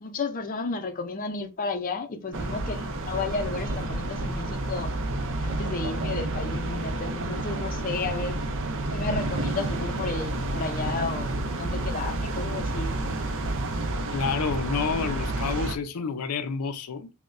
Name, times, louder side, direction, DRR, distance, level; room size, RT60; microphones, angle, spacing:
voice 1, 0.0-4.9 5.4-8.4 8.9-13.0, left 4 dB, 40° left, 0.5 m, -32 dB
sound 1, 2.3-15.8, right 2 dB, 60° right, 0.5 m, -30 dB
voice 2, 14.1-17.1, left 5 dB, 90° left, 0.5 m, -29 dB
5.8 x 2.1 x 2.5 m
head